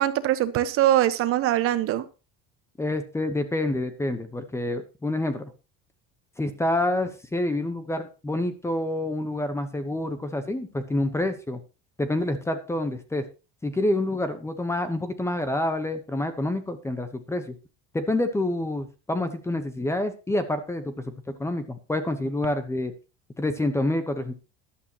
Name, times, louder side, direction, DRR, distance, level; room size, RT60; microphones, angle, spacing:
voice 1, 0.0-2.1, right 13 dB, 45° right, 1.3 m, -22 dB
voice 2, 2.8-5.5 6.4-11.6 12.0-13.3 13.6-17.6 17.9-21.0 21.4-22.9 23.4-24.3, left 1 dB, 10° left, 1.1 m, -27 dB
13.5 x 11.5 x 3.0 m
cardioid pair, 160°, 32 cm